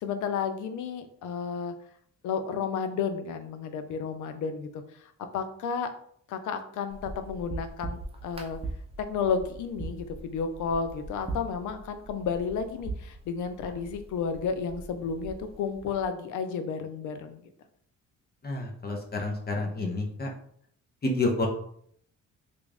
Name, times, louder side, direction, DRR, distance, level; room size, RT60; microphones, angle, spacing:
voice 1, 0.0-1.7 2.2-5.9 6.3-8.6 9.0-17.4, left 6 dB, 80° left, 8 dB, 0.5 m, -32 dB
sound 1, 6.9-16.1, right 3 dB, 20° right, 0.7 m, -41 dB
voice 2, 18.4-20.3 21.0-21.5, left 2 dB, 30° left, 1 dB, 0.8 m, -29 dB
3.0 x 2.6 x 3.4 m, 0.64 s
cardioid pair, 90°, 30 cm